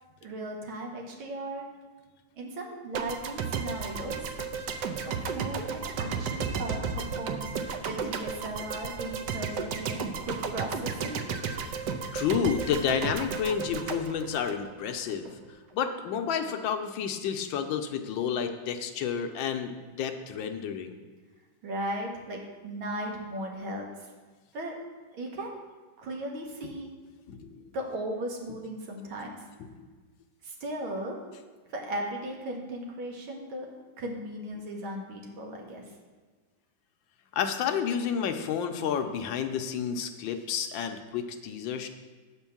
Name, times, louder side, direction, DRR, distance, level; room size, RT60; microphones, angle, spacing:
voice 1, 0.2-1.7 2.4-4.2 5.1-11.3 15.3-15.4 21.6-23.9 24.5-24.8 25.1-25.6 26.0-26.9 27.7-29.4 30.4-31.2 31.7-35.8, right 1 dB, 85° right, 0 dB, 2.1 m, -37 dB
sound 1, 2.9-15.1, right 5 dB, 70° right, 1.2 m, -33 dB
voice 2, 12.1-15.3 15.7-20.9 27.3-27.6 29.8-29.9 37.3-41.9, left 7 dB, 75° left, 6 dB, 1.3 m, -30 dB
8.1 x 4.5 x 7.1 m, 1.4 s
omnidirectional pair, 2.2 m